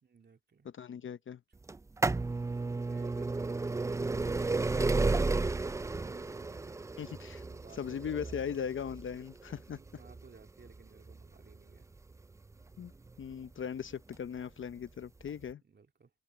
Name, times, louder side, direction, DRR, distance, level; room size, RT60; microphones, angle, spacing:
voice 1, 0.0-1.2 2.5-6.8 7.5-8.6 9.7-12.0 15.6-16.1, right 5 dB, 35° right, 2.4 m, -58 dB
voice 2, 0.6-1.4 7.0-7.4 7.7-9.8 12.8-12.9 13.2-15.6, left 7 dB, 40° left, 0.8 m, -39 dB
sound 1, 1.7-13.3 14.2-14.3 15.2-15.3 15.5-15.6, right 3 dB, 10° right, 0.3 m, -33 dB
cardioid pair, 90°, 30 cm